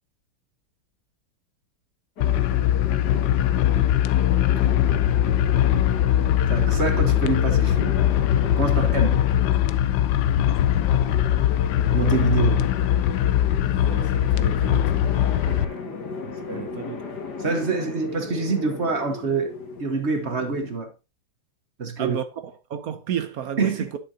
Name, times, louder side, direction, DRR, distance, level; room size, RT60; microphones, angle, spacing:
sound 1, 2.2-15.7, left 11 dB, 90° left, 1.4 m, -21 dB
sound 2, 2.2-20.8, left 4 dB, 65° left, 2.3 m, -36 dB
voice 1, 6.5-8.0 8.6-9.3 11.9-12.7 15.4-15.8 16.5-16.7 17.4-20.9 21.8-22.2 23.6-23.8, right 4 dB, 40° right, 1.2 m, -26 dB
voice 2, 13.7-15.1 16.2-17.2 22.0-24.0, right 9 dB, 65° right, 1.0 m, -32 dB
11.0 x 6.5 x 2.7 m
omnidirectional pair, 2.0 m